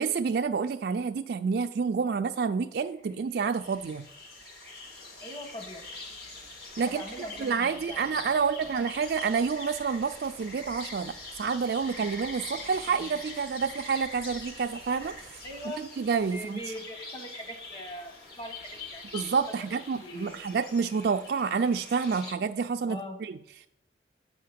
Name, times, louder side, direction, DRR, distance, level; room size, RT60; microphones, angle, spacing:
voice 1, 0.0-4.1 6.8-15.4 15.8-16.6 19.1-23.7, right 5 dB, 60° right, 6 dB, 0.3 m, -29 dB
sound 1, 2.8-22.3, left 2 dB, 55° left, 1.8 m, -44 dB
voice 2, 5.2-5.8 6.9-8.7 15.4-15.9 16.3-19.4 20.0-20.4 22.9-23.2, equal, 25° left, 4 dB, 1.1 m, -42 dB
8.3 x 5.6 x 5.1 m, 0.83 s
head